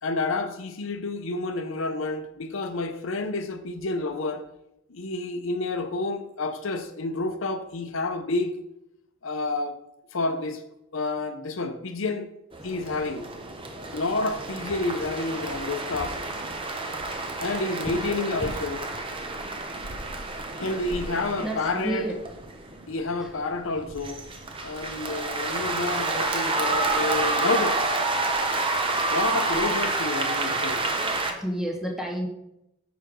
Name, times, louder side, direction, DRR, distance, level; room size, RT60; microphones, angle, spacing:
voice 1, 0.0-4.4 4.9-8.5 9.2-9.8 10.1-10.6 10.9-12.3 12.6-13.3 13.9-16.2 17.4-18.9 20.6-22.0 22.9-24.2 24.6-28.0 29.1-30.9, left 3 dB, 65° left, 0.7 m, -29 dB
sound 1, 12.5-31.3, right 3 dB, 25° right, 0.9 m, -29 dB
voice 2, 21.4-22.2 23.2-23.3 31.4-32.3, right 1 dB, ahead, 1.3 m, -30 dB
6.9 x 5.1 x 6.2 m
head